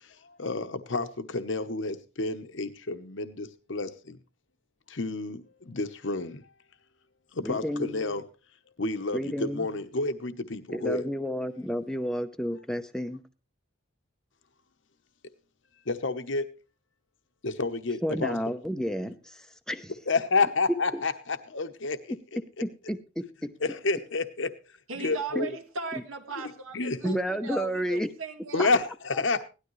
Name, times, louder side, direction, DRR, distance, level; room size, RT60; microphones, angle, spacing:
voice 1, 0.4-4.2 4.9-6.4 7.3-8.2 8.8-11.0 15.9-16.5 17.4-18.3 20.1-22.2 23.6-24.5 24.9-25.5 26.4-27.2 28.5-29.4, left 3 dB, 65° left, 1.0 m, -30 dB
voice 2, 7.4-8.1 9.1-9.7 10.7-13.2 18.0-19.9 22.6-23.5 25.3-25.5 27.0-28.1 28.6-28.7, equal, 5° left, 0.7 m, -31 dB
voice 3, 24.9-28.8, right 4 dB, 80° right, 1.9 m, -38 dB
17.0 x 12.0 x 3.2 m
head